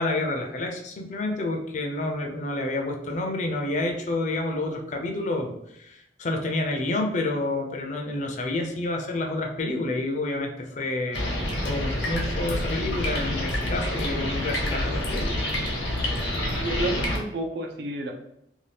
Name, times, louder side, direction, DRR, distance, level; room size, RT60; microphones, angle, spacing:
voice 1, 0.0-15.4, left 2 dB, 40° left, 3 dB, 0.5 m, -29 dB
sound 1, 11.1-17.2, left 1 dB, 85° left, 0.9 m, -27 dB
voice 2, 16.4-18.1, right 1 dB, 60° right, 3 dB, 0.5 m, -30 dB
2.7 x 2.3 x 3.3 m, 0.77 s
head